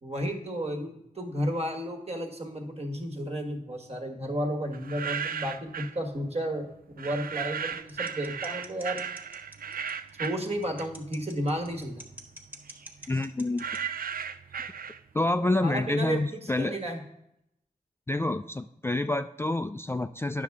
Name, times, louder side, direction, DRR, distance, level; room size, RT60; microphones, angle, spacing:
voice 1, 0.0-6.7 7.0-9.0 10.2-12.0 15.6-17.0, equal, 45° right, 3 dB, 1.6 m, -32 dB
sound 1, 4.7-6.0 7.0-11.2 11.6-15.3, right 7 dB, 70° right, 0.4 m, -36 dB
sound 2, 7.9-13.8, right 1 dB, 10° right, 1.5 m, -46 dB
voice 2, 13.1-13.6 15.1-16.8 18.1-20.4, left 2 dB, 15° left, 9 dB, 0.3 m, -28 dB
9.7 x 6.6 x 3.6 m, 0.81 s
cardioid pair, 55°, 15 cm